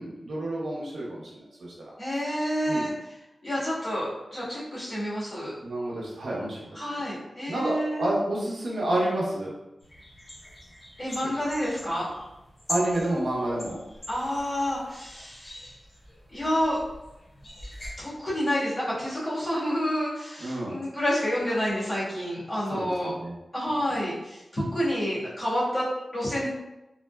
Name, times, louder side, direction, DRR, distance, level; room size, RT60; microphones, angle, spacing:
voice 1, 0.0-1.7 2.7-2.9 5.6-6.7 7.5-9.5 12.7-13.8 20.4-20.8 22.7-23.3, right 1 dB, 85° right, -5 dB, 0.8 m, -29 dB
voice 2, 2.0-2.9 3.4-5.5 6.7-8.1 11.0-12.1 14.1-15.6 16.3-16.8 18.0-23.1 23.5-26.5, equal, 30° left, -9 dB, 1.4 m, -29 dB
sound 1, 9.8-17.9, equal, 50° left, 0.9 m, -42 dB
3.6 x 2.0 x 2.2 m, 0.96 s
wide cardioid pair, 105°, 0 cm